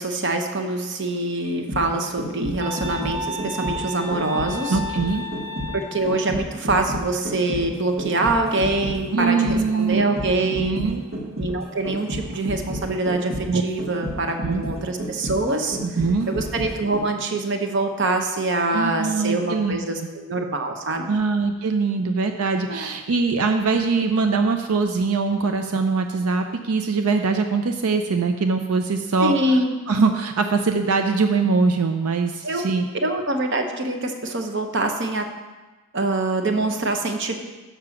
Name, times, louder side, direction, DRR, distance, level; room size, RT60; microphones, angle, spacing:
voice 1, 0.0-4.8 5.7-10.8 11.4-15.8 16.3-21.1 22.7-22.9 29.2-29.8 32.4-32.6 33.0-35.3 35.9-37.3, right 2 dB, 55° right, 5 dB, 0.9 m, -24 dB
sound 1, 1.4-17.3 17.7-17.8, equal, 70° right, 1.7 m, -31 dB
sound 2, 2.6-6.2, left 2 dB, 25° right, 0.9 m, -33 dB
voice 2, 4.7-5.2 9.1-10.2 10.5-11.0 13.5-13.6 14.4-14.6 15.8-16.3 18.7-19.8 21.1-29.3 29.9-32.9, right 4 dB, 85° right, 6 dB, 0.5 m, -22 dB
6.7 x 6.0 x 6.9 m, 1.2 s
head